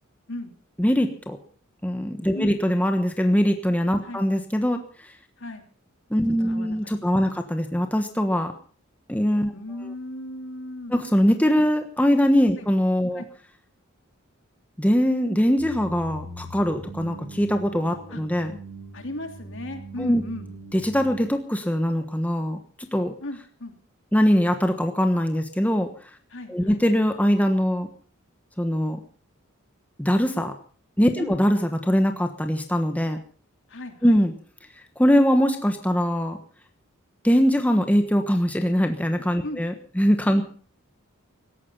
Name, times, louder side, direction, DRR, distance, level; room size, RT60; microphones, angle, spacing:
voice 1, 0.8-1.4 1.8-4.8 6.1-8.5 9.1-9.5 10.9-13.2 14.8-18.5 20.0-20.2 20.7-23.1 24.1-25.9 26.5-27.9 28.6-29.0 30.0-30.5 31.0-33.2 34.0-34.3 35.0-36.4 37.2-40.4, equal, 5° left, 6 dB, 1.2 m, -22 dB
voice 2, 6.4-7.4 9.5-11.0 12.6-12.7 13.1-13.3 18.1-18.2 18.9-20.5 23.2-23.7 26.3-26.8 31.2-31.3 33.7-34.2 39.4-39.6, left 1 dB, 60° left, 6 dB, 3.0 m, -36 dB
sound 1, 15.6-21.3, right 2 dB, 50° right, 4.1 m, -41 dB
17.5 x 14.5 x 5.5 m, 0.42 s
head